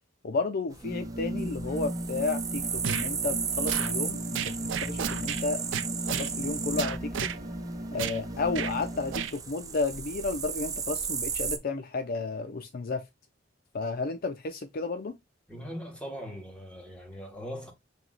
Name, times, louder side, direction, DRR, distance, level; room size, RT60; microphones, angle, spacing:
voice 1, 0.2-4.4 4.9-5.6 6.1-7.3 7.9-13.0 13.7-15.2, left 3 dB, 50° left, 0.5 m, -32 dB
sound 1, 0.7-11.6, right 6 dB, 20° right, 0.4 m, -35 dB
sound 2, 0.8-9.3, right 1 dB, 35° right, 1.3 m, -36 dB
sound 3, 2.8-3.1 3.7-3.9 4.3-5.4 5.7-6.3 6.8-7.4 8.0-8.2 8.5-8.7 9.1-9.3, right 9 dB, 75° right, 0.4 m, -32 dB
voice 2, 15.5-17.7, equal, 5° left, 1.5 m, -40 dB
5.6 x 2.9 x 2.4 m
head